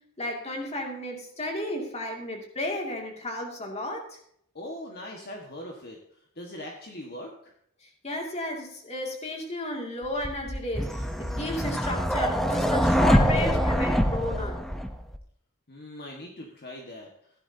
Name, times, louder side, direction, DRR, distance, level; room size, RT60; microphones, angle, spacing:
voice 1, 0.2-4.2 7.8-14.6, left 1 dB, 30° left, 1 dB, 2.4 m, -33 dB
voice 2, 4.5-7.5 15.7-17.1, left 1 dB, 45° left, 0 dB, 1.6 m, -41 dB
sound 1, 10.2-15.2, equal, ahead, 0.8 m, -24 dB
15.5 x 11.5 x 2.8 m, 0.68 s
head